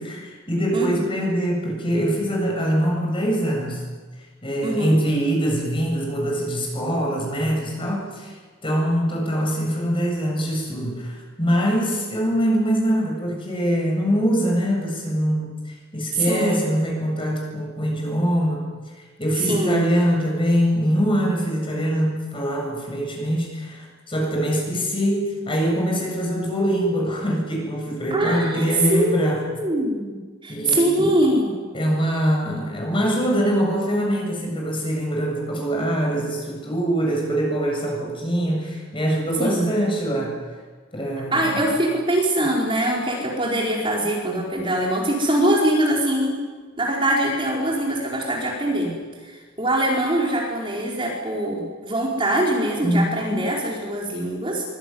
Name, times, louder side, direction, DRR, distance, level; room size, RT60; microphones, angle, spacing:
voice 1, 0.0-3.8 4.4-8.3 8.6-18.7 19.2-29.4 30.5-31.1 31.7-40.4 40.9-41.7 52.8-53.4, equal, 25° left, 0 dB, 7.7 m, -23 dB
voice 2, 4.6-5.0 16.1-16.6 19.3-19.8 28.1-31.5 39.4-39.7 41.3-46.4 46.8-48.9 49.2-54.6, right 1 dB, 25° right, -2 dB, 4.9 m, -23 dB
24.5 x 21.5 x 9.6 m, 1.4 s
head